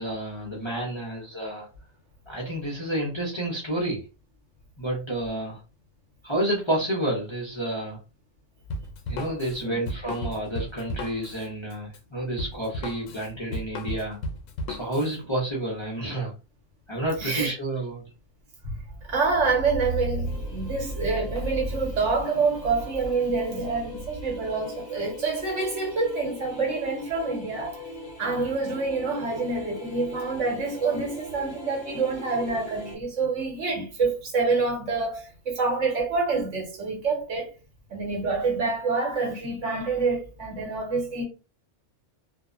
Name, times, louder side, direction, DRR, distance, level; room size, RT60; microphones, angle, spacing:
voice 1, 0.0-1.7 2.3-4.0 4.8-5.6 6.2-8.0 9.1-14.2 14.7-16.3 16.9-18.0, right 1 dB, 30° left, 0.6 m, -30 dB
Drum kit, 8.7-15.2, left 1 dB, 90° left, 0.9 m, -35 dB
voice 2, 17.2-17.5 19.1-27.8 28.2-37.5 37.9-41.2, right 4 dB, 75° right, 1.3 m, -27 dB
sound 1, 20.2-33.0, left 3 dB, 50° left, 0.9 m, -42 dB
2.6 x 2.1 x 2.4 m
omnidirectional pair, 1.3 m